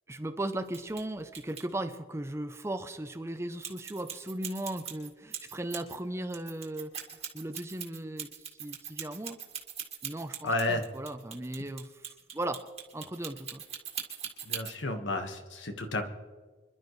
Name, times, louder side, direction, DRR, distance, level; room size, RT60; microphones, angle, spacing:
voice 1, 0.1-9.4 10.0-12.6 12.9-13.6, right 1 dB, 15° right, 9 dB, 0.6 m, -37 dB
sound 1, 0.7-1.0 1.3-1.6 3.6-6.0 6.3-14.8, right 8 dB, 30° right, 2.0 m, -40 dB
voice 2, 10.4-10.8 14.4-16.0, left 2 dB, 70° left, 6 dB, 1.5 m, -31 dB
26.0 x 12.0 x 3.2 m, 1.4 s
head